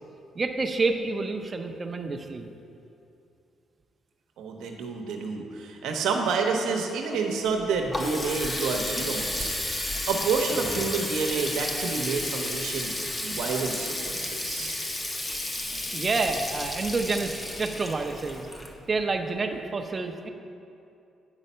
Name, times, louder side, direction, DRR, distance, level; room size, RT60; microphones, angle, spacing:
voice 1, 0.4-2.5 15.9-18.5 18.9-20.3, right 3 dB, 35° right, 5 dB, 0.6 m, -28 dB
voice 2, 4.4-9.7 10.1-14.8, right 4 dB, 85° right, 2 dB, 0.9 m, -29 dB
Water tap faucet, 7.5-19.2, left 1 dB, 20° left, 0.7 m, -32 dB
8.8 x 4.1 x 5.5 m, 2.6 s
cardioid pair, 90°, 0 cm